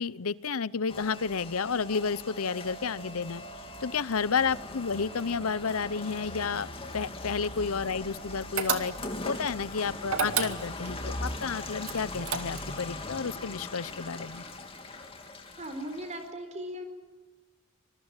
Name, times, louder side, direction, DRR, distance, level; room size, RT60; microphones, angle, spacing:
voice 1, 0.0-3.4 3.8-6.7 6.9-8.9 9.2-14.4, left 5 dB, 75° left, 19 dB, 0.7 m, -31 dB
Rain, 0.9-16.3, left 2 dB, 25° left, 2.9 m, -40 dB
sound 1, 8.6-9.3 10.1-11.0 11.8-12.8, right 7 dB, 75° right, 2.2 m, -30 dB
voice 2, 15.5-16.8, equal, 30° right, 8 dB, 4.1 m, -38 dB
25.5 x 22.0 x 9.0 m, 1.3 s
head